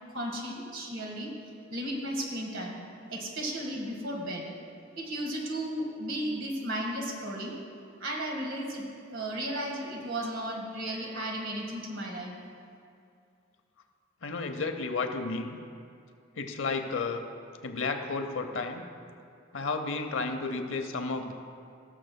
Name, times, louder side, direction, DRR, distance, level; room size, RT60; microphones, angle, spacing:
voice 1, 0.1-1.3 1.7-2.7 3.1-4.4 4.9-7.6 8.0-12.3, right 1 dB, 75° right, -1 dB, 1.6 m, -34 dB
voice 2, 14.2-15.6 16.4-17.2 17.6-18.8 19.5-21.3, left 4 dB, 70° left, 6 dB, 0.7 m, -32 dB
18.5 x 6.6 x 2.2 m, 2.4 s
head